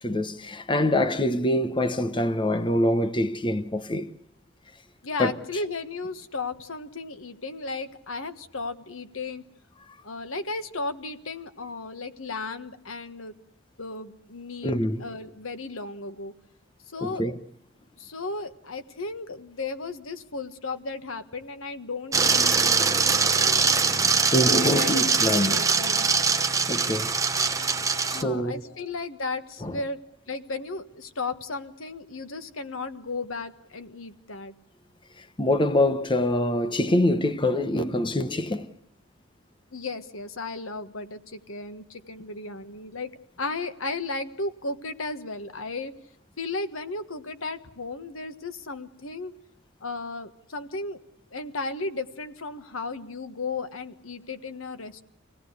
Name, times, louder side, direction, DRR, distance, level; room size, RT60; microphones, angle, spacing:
voice 1, 0.0-4.1 5.2-5.3 14.6-15.0 17.0-17.3 24.0-25.6 26.7-27.1 28.1-28.6 29.6-29.8 35.4-38.7, left 1 dB, 25° left, 1.0 m, -25 dB
voice 2, 5.0-9.4 10.0-13.3 13.8-16.3 16.9-17.2 18.0-23.7 24.6-26.3 28.1-34.5 39.7-43.1 43.4-45.9 46.4-49.3 49.8-51.0 51.3-55.0, left 3 dB, 85° left, 1.5 m, -35 dB
sound 1, 22.1-28.2, right 5 dB, 15° right, 0.9 m, -22 dB
25.0 x 17.5 x 8.3 m
head